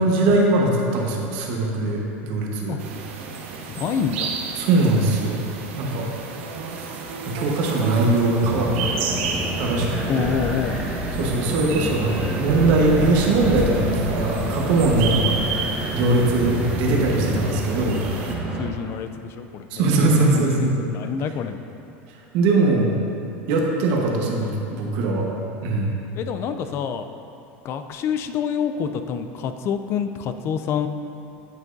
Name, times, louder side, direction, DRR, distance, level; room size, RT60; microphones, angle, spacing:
voice 1, 0.0-2.8 4.6-5.4 5.8-6.1 7.2-8.7 9.6-9.9 10.2-10.3 11.2-15.4 15.9-18.0 19.7-20.8 22.3-22.9 23.5-25.3 25.6-26.0, right 2 dB, 60° right, -1 dB, 1.2 m, -21 dB
sound 1, 2.8-18.4, right 5 dB, 80° right, 0.9 m, -32 dB
voice 2, 3.7-4.3 10.0-10.8 14.9-15.2 18.6-21.6 26.1-27.1 27.6-30.9, left 7 dB, 40° left, 9 dB, 0.4 m, -27 dB
sound 2, 8.4-18.7, equal, 10° right, 1.2 m, -28 dB
9.6 x 7.3 x 2.6 m, 2.7 s
supercardioid pair, 135°, 7 cm